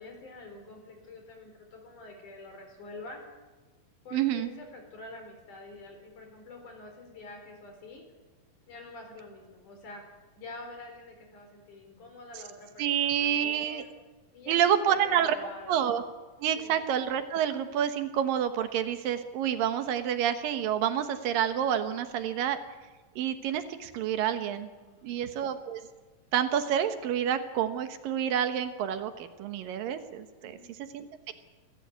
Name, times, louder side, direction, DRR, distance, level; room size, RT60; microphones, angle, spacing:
voice 1, 0.0-3.2 4.1-8.0 8.7-10.0 10.4-13.9 14.3-15.8 16.6-16.7 24.8-25.5 30.4-30.7, left 2 dB, 60° left, 4 dB, 5.5 m, -47 dB
voice 2, 4.1-4.5 12.8-13.8 14.5-16.0 16.4-22.6 23.2-24.7 25.0-25.8 26.3-30.6 30.9-31.3, right 9 dB, 80° right, 9 dB, 2.9 m, -28 dB
26.5 x 14.0 x 8.2 m, 1.3 s
omnidirectional pair, 4.0 m